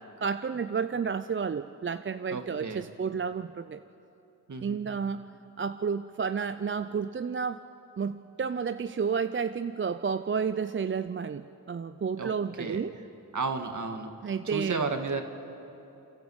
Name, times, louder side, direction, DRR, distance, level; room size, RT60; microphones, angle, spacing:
voice 1, 0.0-3.8 4.6-5.3 5.6-7.6 8.0-12.9 14.2-14.8, right 6 dB, 35° right, 11 dB, 0.5 m, -31 dB
voice 2, 2.3-2.8 4.5-5.0 12.2-12.3 12.6-12.8 13.3-14.1 14.4-15.2, right 4 dB, 55° right, 5 dB, 2.0 m, -33 dB
29.0 x 12.0 x 8.0 m, 3.0 s
cardioid pair, 55°, 35 cm